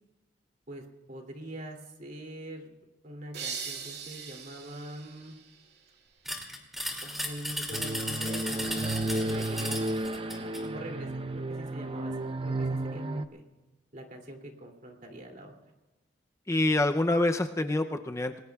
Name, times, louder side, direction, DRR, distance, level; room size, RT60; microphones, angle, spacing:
voice 1, 0.7-2.8 3.0-5.4 7.0-9.8 10.1-13.4 13.9-15.5, right 1 dB, 45° right, 2 dB, 2.7 m, -43 dB
sound 1, 3.3-6.1, right 6 dB, 65° right, 2.3 m, -41 dB
sound 2, 6.3-10.7, equal, ahead, 2.5 m, -36 dB
sound 3, 7.7-13.3, right 1 dB, 30° right, 0.6 m, -32 dB
voice 2, 16.5-18.4, left 2 dB, 15° left, 6 dB, 0.5 m, -26 dB
27.0 x 20.5 x 2.4 m, 1.1 s
head